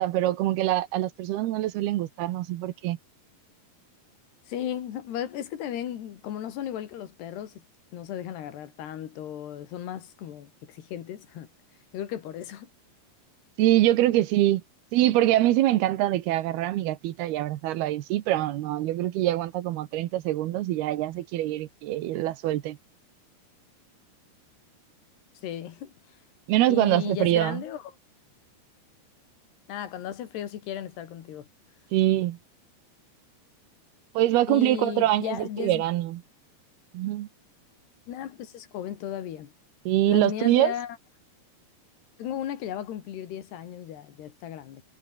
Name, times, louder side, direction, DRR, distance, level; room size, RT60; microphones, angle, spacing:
voice 1, 0.0-3.0 13.6-14.6 14.9-22.8 26.5-27.6 31.9-32.4 34.1-36.2 36.9-37.3 39.9-40.7, right 14 dB, 75° right, 2.9 m, -24 dB
voice 2, 4.5-7.5 7.9-11.5 11.9-12.7 25.4-25.9 26.7-27.8 29.7-31.5 34.5-35.8 38.1-39.5 40.1-41.0 42.2-44.8, left 10 dB, 80° left, 4.2 m, -35 dB
omnidirectional pair, 4.8 m